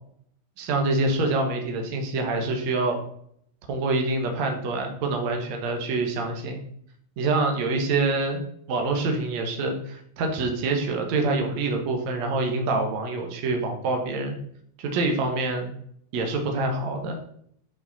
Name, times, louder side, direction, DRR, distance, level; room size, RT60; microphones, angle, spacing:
voice 1, 0.6-3.0 3.7-6.6 7.2-8.4 8.7-14.4 14.8-15.7 16.1-17.2, right 3 dB, 70° right, 3 dB, 1.7 m, -26 dB
10.5 x 5.3 x 4.0 m, 0.67 s
omnidirectional pair, 5.0 m